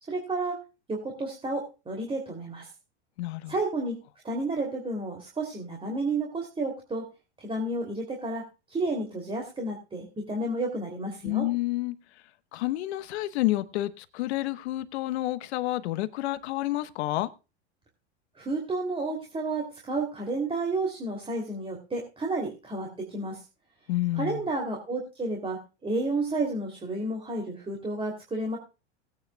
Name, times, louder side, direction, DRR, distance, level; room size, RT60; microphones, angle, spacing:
voice 1, 0.1-0.6 0.9-2.7 3.5-4.0 4.2-7.1 7.4-11.5 18.4-23.4 24.1-28.6, right 2 dB, 15° right, 2.8 m, -31 dB
voice 2, 3.2-3.5 11.2-11.9 12.5-17.3 23.9-24.5, left 16 dB, 70° left, 1.2 m, -29 dB
19.5 x 9.3 x 2.3 m
hypercardioid pair, 115°, 34 cm